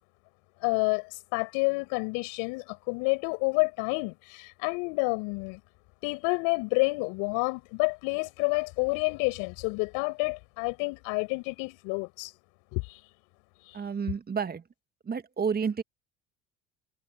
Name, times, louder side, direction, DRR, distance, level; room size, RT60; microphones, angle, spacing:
voice 1, 0.6-5.6 6.0-12.3 12.7-13.0, left 30 dB, 70° left, 6.9 m, -29 dB
voice 2, 13.7-14.6 15.1-15.8, right 6 dB, 25° right, 1.8 m, -30 dB
hypercardioid pair, 70°, 34 cm